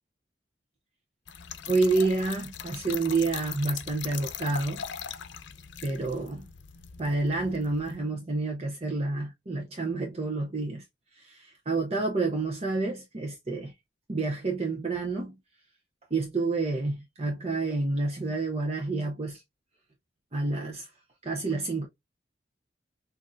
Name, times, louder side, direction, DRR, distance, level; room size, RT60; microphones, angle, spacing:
Trickle dribble / Fill (with liquid), 1.3-8.0, left 8 dB, 80° left, 0.6 m, -40 dB
voice 1, 1.7-4.8 5.8-6.5 7.0-10.8 11.1-13.7 14.1-15.4 16.1-19.4 20.3-20.9 21.2-21.9, right 3 dB, 35° right, 0.7 m, -29 dB
6.3 x 2.6 x 2.6 m
head